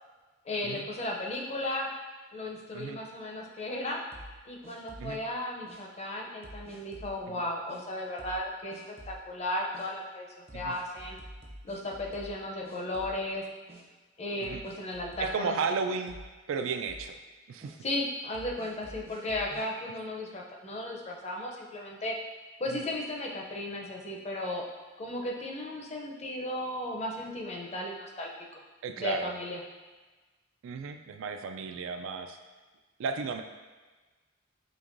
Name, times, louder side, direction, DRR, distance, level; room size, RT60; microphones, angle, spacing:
voice 1, 0.4-1.9 2.3-4.0 4.5-8.8 9.1-10.3 10.5-11.2 11.6-13.4 14.2-15.6 17.8-22.2 22.6-24.6 25.0-28.6 29.0-29.6, left 1 dB, 30° left, 0 dB, 0.5 m, -35 dB
sound 1, 4.1-5.2 5.7-5.8 6.4-7.2 7.7-7.8 8.2-8.5 8.7-9.2 9.7-9.9 10.5-12.4 12.6-13.4 13.7-13.8 14.4-15.8 16.1-16.4 16.6-17.1 17.6-17.8 18.3-19.7, right 1 dB, 30° right, 0.6 m, -48 dB
voice 2, 15.2-16.2 16.5-17.1 17.5-17.8 22.7-22.8 28.8-29.3 30.6-32.4 33.0-33.4, right 5 dB, 75° right, 7 dB, 0.3 m, -34 dB
5.2 x 2.9 x 2.5 m, 1.3 s
head